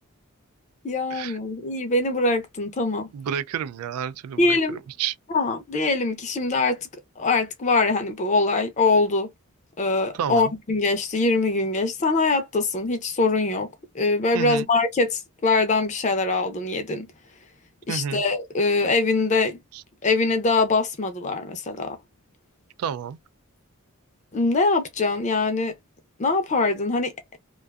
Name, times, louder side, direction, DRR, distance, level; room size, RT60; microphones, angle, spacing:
voice 1, 0.8-3.1 4.4-4.8 5.3-6.9 7.2-9.3 9.8-17.1 17.9-19.6 20.0-22.0 24.3-25.7 26.2-27.4, left 3 dB, 30° left, 0.5 m, -23 dB
voice 2, 3.1-5.1 10.1-10.5 14.3-14.7 17.9-18.2 19.7-19.8 22.8-23.2, right 8 dB, 80° right, 0.3 m, -30 dB
2.5 x 2.3 x 2.2 m
head